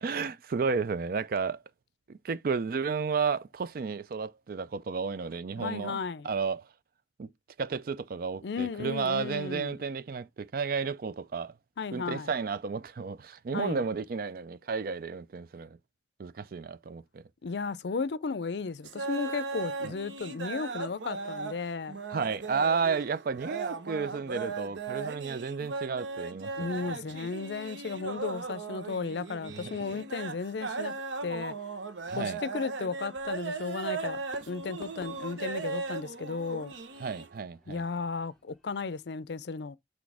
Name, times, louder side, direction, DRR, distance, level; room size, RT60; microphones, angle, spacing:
voice 1, 0.0-1.6 2.1-6.0 6.2-6.7 7.2-7.3 7.6-11.6 11.9-15.8 16.2-17.2 19.8-19.9 22.1-26.7 29.5-29.8 32.1-32.4 37.0-37.9, right 5 dB, 50° right, 0.4 m, -32 dB
voice 2, 5.6-6.3 8.4-9.7 11.8-12.3 13.5-13.8 17.4-22.0 26.6-30.9 31.2-31.5 32.1-36.7 37.7-39.8, left 4 dB, 65° left, 0.5 m, -34 dB
sound 1, 18.8-21.6 21.9-37.4, right 4 dB, 80° right, 0.8 m, -37 dB
Fireworks, 33.9-38.9, left 1 dB, 5° left, 0.9 m, -57 dB
6.2 x 3.2 x 4.7 m
head